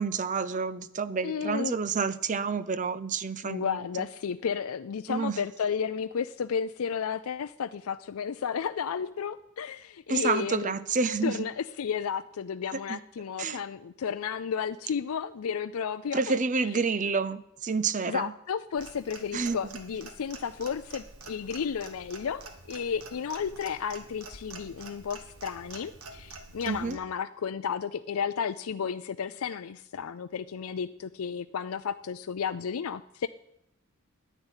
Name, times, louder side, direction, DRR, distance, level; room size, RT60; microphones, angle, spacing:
voice 1, 0.0-3.9 5.1-5.4 10.1-11.5 12.9-13.0 13.4-13.6 16.1-18.3 19.3-19.6 26.7-27.0, right 4 dB, 35° right, 14 dB, 0.6 m, -29 dB
voice 2, 1.2-1.8 3.4-10.7 11.2-16.4 18.0-33.3, left 7 dB, 75° left, 10 dB, 0.4 m, -33 dB
Clock, 18.8-27.0, right 3 dB, 75° right, 1.8 m, -47 dB
10.5 x 10.0 x 9.0 m, 0.82 s
head